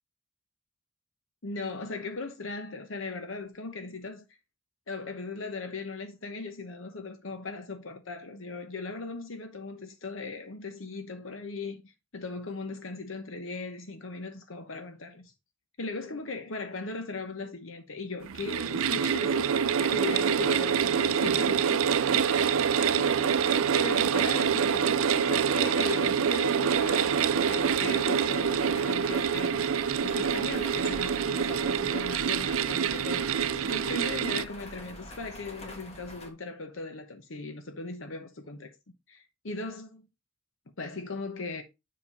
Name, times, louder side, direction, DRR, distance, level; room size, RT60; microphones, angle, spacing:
voice 1, 1.4-4.2 4.9-15.3 15.8-21.8 22.1-29.7 30.0-38.7 39.1-40.0 40.7-41.6, left 3 dB, 75° left, 1.0 m, -38 dB
sound 1, 18.2-34.4, right 7 dB, 85° right, 0.5 m, -26 dB
sound 2, 26.7-36.3, left 1 dB, 30° left, 1.6 m, -46 dB
7.3 x 5.2 x 4.1 m
head